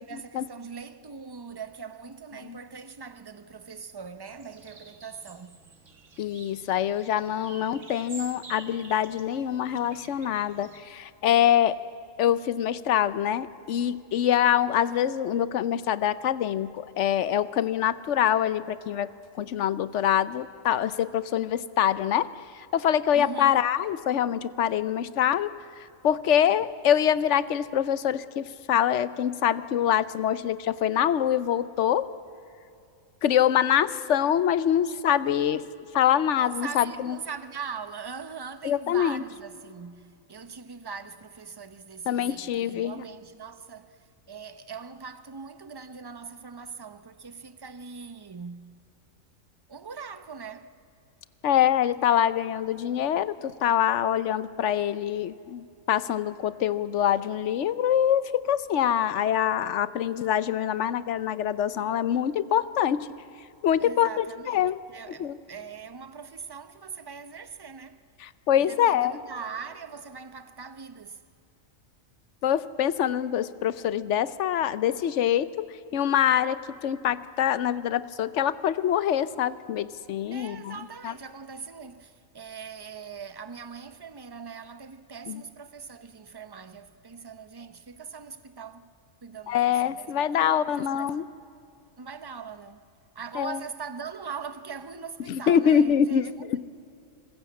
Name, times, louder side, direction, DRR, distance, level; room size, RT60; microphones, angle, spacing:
voice 1, 0.0-5.6 23.1-23.7 36.3-48.7 49.7-50.7 63.8-68.0 68.6-71.2 80.3-88.9 89.2-91.3 92.0-92.8 93.1-96.6, right 5 dB, 20° right, 0.7 m, -41 dB
sound 1, 4.3-10.8, right 4 dB, 70° right, 2.2 m, -48 dB
voice 2, 6.2-11.8 12.2-19.1 19.4-22.3 22.5-32.1 33.2-35.7 35.9-37.2 38.6-39.2 42.1-43.0 51.4-63.1 63.6-64.8 65.2-65.4 68.2-69.1 72.4-75.7 75.9-80.8 81.0-81.1 85.3-85.4 89.5-91.2 93.4-93.6 95.3-96.6, left 10 dB, 65° left, 1.0 m, -25 dB
26.5 x 20.5 x 8.4 m
omnidirectional pair, 1.4 m